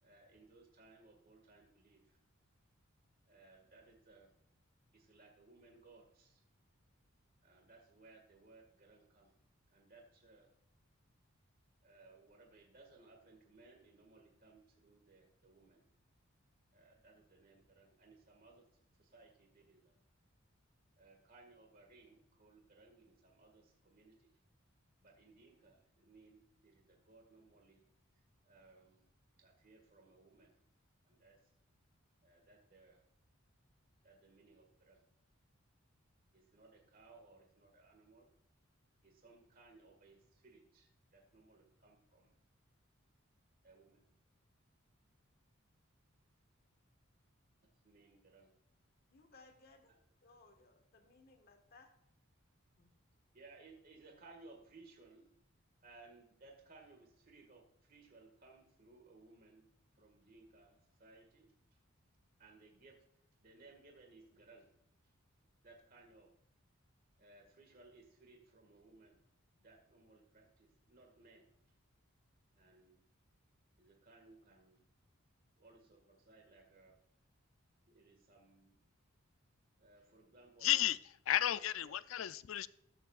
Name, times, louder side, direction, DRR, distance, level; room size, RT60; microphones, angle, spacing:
voice 1, 0.0-2.2 3.3-4.3 4.9-6.4 7.4-9.3 9.7-10.5 11.8-15.8 16.7-18.6 19.0-19.9 21.0-24.3 25.0-27.8 28.4-29.0 29.4-30.5 31.0-31.4 32.2-33.0 34.0-35.0 36.3-38.3 39.0-42.3 43.6-44.0 47.8-48.5 53.3-55.3 55.8-59.7 60.0-61.5 62.4-63.0 63.4-64.7 65.6-66.3 67.2-69.2 69.6-71.5 72.6-73.0 73.8-74.8 75.6-76.9 77.9-78.8 79.8-80.9 81.8-81.9, right 3 dB, 45° right, 1.9 m, -62 dB
voice 2, 49.1-49.9 50.2-51.9 52.8-52.9, left 3 dB, 45° left, 1.5 m, -63 dB
voice 3, 80.6-81.0 81.3-82.7, left 12 dB, 70° left, 0.4 m, -33 dB
20.0 x 7.2 x 2.4 m
head